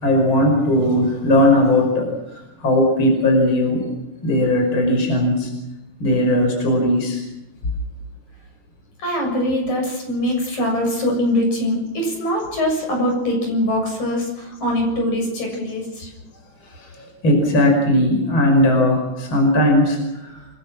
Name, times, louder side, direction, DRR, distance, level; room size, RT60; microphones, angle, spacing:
voice 1, 0.0-3.8 4.2-5.5 6.0-7.2 17.0-20.0, left 1 dB, 40° left, 2 dB, 6.3 m, -18 dB
voice 2, 9.0-16.1, left 1 dB, 65° left, 1 dB, 8.4 m, -22 dB
29.5 x 21.5 x 6.2 m, 0.93 s
omnidirectional pair, 3.6 m